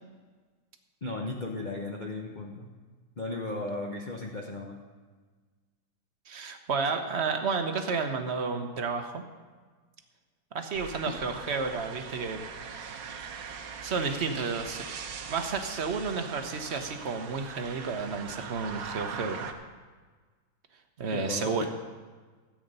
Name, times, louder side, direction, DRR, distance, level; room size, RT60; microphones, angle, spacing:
voice 1, 1.0-2.7 3.2-4.8 11.0-11.2 21.1-21.7, left 2 dB, 55° left, 1 dB, 0.5 m, -35 dB
voice 2, 6.3-9.2 10.5-12.4 12.7-13.2 13.8-14.9 15.3-19.5 21.0-21.7, right 4 dB, 50° right, 6 dB, 0.8 m, -31 dB
sound 1, 10.7-19.5, right 6 dB, 90° right, 1.7 m, -41 dB
13.5 x 8.7 x 5.4 m, 1.4 s
omnidirectional pair, 2.2 m